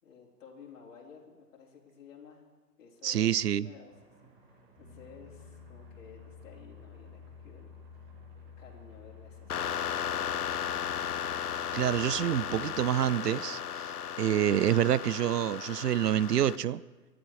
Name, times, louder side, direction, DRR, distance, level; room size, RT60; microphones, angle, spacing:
voice 1, 0.0-2.4 2.8-3.9 4.2-7.8 8.6-10.9, left 6 dB, 50° left, -3 dB, 4.0 m, -54 dB
voice 2, 3.0-3.7 11.7-16.8, right 11 dB, 75° right, 20 dB, 0.6 m, -27 dB
sound 1, 3.9-13.3, right 3 dB, 35° right, 6.7 m, -61 dB
Piano, 4.7-12.8, left 6 dB, ahead, 7.3 m, -51 dB
sound 2, 9.5-16.6, left 9 dB, 65° left, 0.8 m, -35 dB
24.0 x 11.5 x 4.8 m, 1.3 s
hypercardioid pair, 155°, 49 cm